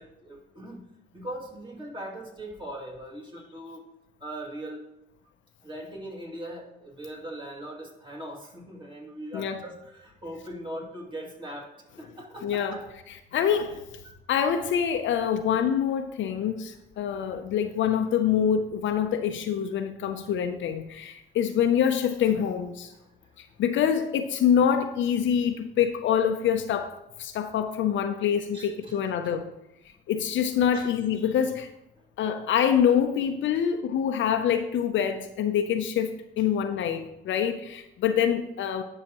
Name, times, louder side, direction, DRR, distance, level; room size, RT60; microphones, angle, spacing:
voice 1, 0.0-3.8 4.2-4.9 5.6-12.9 13.7-13.8 14.0-14.1 17.0-17.3 23.0-23.6 28.5-29.0 30.7-30.9 32.0-32.1, right 1 dB, 25° right, -1 dB, 2.5 m, -40 dB
voice 2, 12.4-12.8 13.3-13.8 14.3-22.9 23.4-29.4 30.1-31.7 32.2-38.8, left 8 dB, 65° left, 6 dB, 0.6 m, -25 dB
10.5 x 5.6 x 3.0 m, 0.89 s
supercardioid pair, 75°, 21 cm